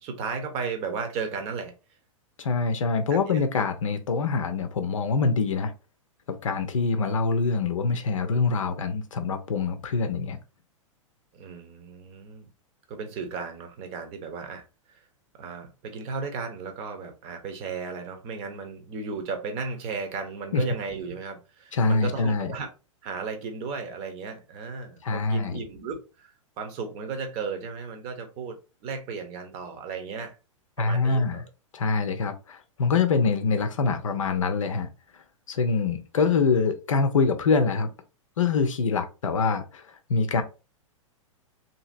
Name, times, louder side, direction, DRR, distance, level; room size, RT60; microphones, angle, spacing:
voice 1, 0.0-1.7 3.1-3.5 11.3-12.5 12.9-14.6 14.9-15.0 15.4-22.7 23.0-30.4 30.8-31.4, right 5 dB, 35° right, 0.8 m, -35 dB
voice 2, 2.4-5.7 6.3-10.4 20.5-20.6 21.7-22.5 25.0-25.6 30.8-31.4 31.7-34.9 35.5-37.9 38.4-40.4, left 4 dB, 70° left, 0.5 m, -25 dB
2.8 x 2.7 x 2.5 m
figure-of-eight pair, 100°, 17 cm